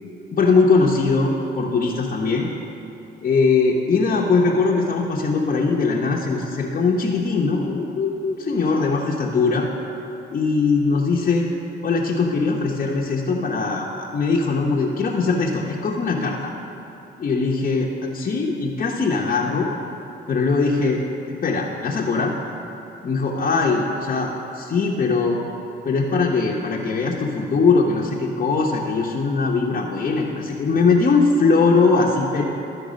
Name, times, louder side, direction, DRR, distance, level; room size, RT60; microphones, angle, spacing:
voice 1, 0.3-2.5 3.2-9.7 10.3-11.5 11.8-16.5 17.2-19.7 20.3-21.0 21.4-22.3 23.0-25.4 25.8-32.5, left 4 dB, 40° left, -4 dB, 0.8 m, -21 dB
12.0 x 4.6 x 5.1 m, 2.9 s
cardioid pair, 90°, 20 cm